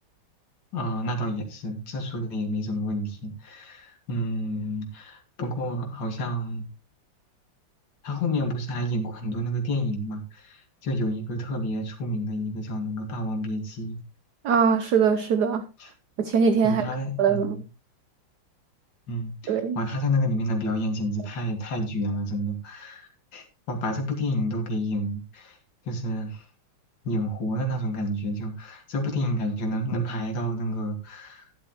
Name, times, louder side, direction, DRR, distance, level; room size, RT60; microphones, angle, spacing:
voice 1, 0.7-6.6 8.0-14.0 15.8-15.9 16.6-17.5 19.1-25.6 25.8-26.5 27.0-31.5, equal, 65° left, 2.9 m, -29 dB
voice 2, 14.4-15.6 16.2-16.8 17.2-17.6 19.5-19.8, right 6 dB, 65° right, 1.2 m, -22 dB
13.5 x 10.5 x 2.9 m
omnidirectional pair, 2.2 m